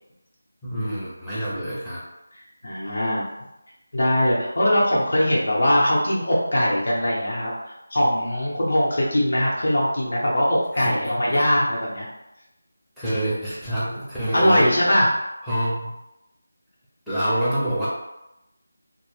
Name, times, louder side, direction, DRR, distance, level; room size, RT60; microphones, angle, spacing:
voice 1, 0.6-2.0 10.7-11.0 11.3-11.4 13.0-14.7 15.4-15.9 17.1-17.9, right 1 dB, ahead, -14 dB, 0.5 m, -26 dB
voice 2, 2.6-3.3 3.9-12.1 14.3-15.1, equal, 60° left, -5 dB, 0.8 m, -21 dB
2.1 x 2.0 x 3.2 m, 0.92 s
figure-of-eight pair, 170°, 0 cm